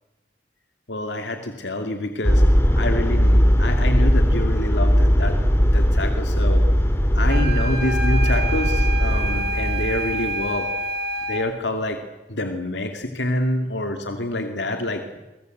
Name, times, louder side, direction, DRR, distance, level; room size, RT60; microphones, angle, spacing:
voice 1, 0.9-2.4 2.7-5.4 5.7-6.6 7.1-10.7 11.3-12.0 12.3-15.2, left 1 dB, 75° left, 5 dB, 2.5 m, -27 dB
sound 1, 2.2-10.6, equal, 15° left, 3.5 m, -19 dB
sound 2, 7.3-11.5, right 2 dB, 65° right, 4.9 m, -28 dB
30.0 x 24.0 x 8.1 m, 1.1 s
head